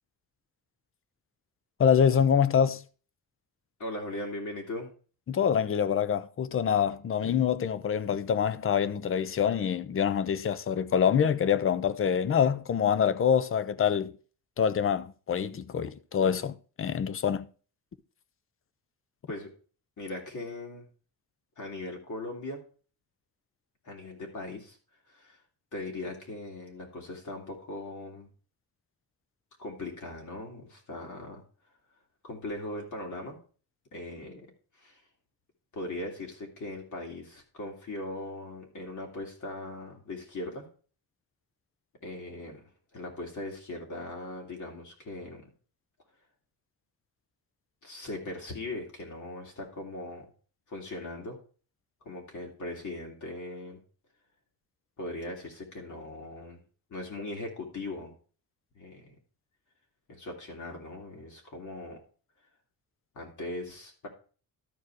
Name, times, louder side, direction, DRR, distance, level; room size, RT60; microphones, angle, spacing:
voice 1, 1.8-2.8 5.3-14.1 14.6-17.5, left 7 dB, 35° left, 0.5 m, -25 dB
voice 2, 3.8-4.9 19.3-19.5 20.0-20.9 21.6-22.6 23.8-24.8 25.1-25.4 25.7-28.3 29.6-31.4 32.2-33.4 33.9-34.5 34.8-35.0 35.7-40.7 42.0-45.5 47.8-50.3 50.7-51.4 52.0-53.8 55.0-56.6 56.9-58.1 58.7-59.2 60.1-62.0 63.1-64.1, left 2 dB, 55° left, 3.0 m, -39 dB
13.0 x 4.7 x 4.7 m
wide cardioid pair, 155°, 36 cm